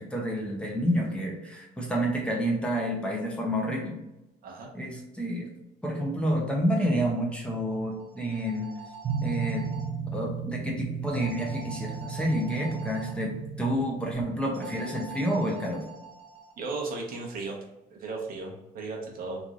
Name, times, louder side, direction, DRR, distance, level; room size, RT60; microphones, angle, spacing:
voice 1, 0.0-4.0 4.7-5.5 5.8-8.7 9.2-9.6 10.1-13.3 13.6-15.8, equal, 5° left, -1 dB, 0.7 m, -29 dB
sound 1, 7.9-9.9 11.1-13.1 14.5-16.5, right 5 dB, 90° right, 0.7 m, -45 dB
sound 2, 9.0-14.1, right 6 dB, 35° right, 0.4 m, -34 dB
voice 2, 16.6-17.6 17.9-19.4, right 3 dB, 60° right, -1 dB, 0.8 m, -35 dB
3.1 x 2.5 x 2.4 m, 0.93 s
cardioid pair, 110°, 17 cm